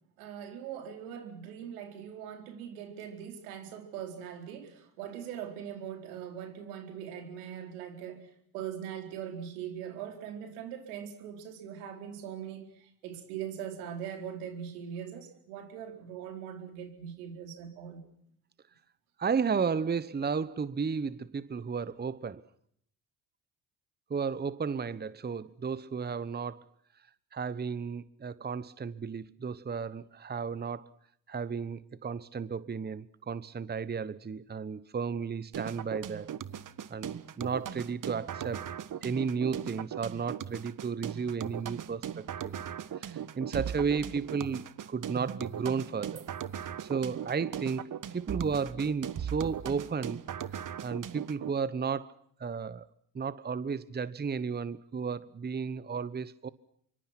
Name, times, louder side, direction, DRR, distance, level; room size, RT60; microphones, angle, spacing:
voice 1, 0.2-18.0, right 9 dB, 85° right, 4.5 m, -41 dB
voice 2, 19.2-22.5 24.1-26.7 27.3-30.9 31.3-36.3 36.9-38.7 39.0-42.6 43.0-46.3 46.8-50.2 50.5-52.9 53.1-56.5, right 5 dB, 20° right, 1.0 m, -33 dB
sound 1, 35.5-51.5, right 9 dB, 45° right, 1.5 m, -38 dB
26.0 x 24.5 x 6.0 m
hypercardioid pair, 60°, 43 cm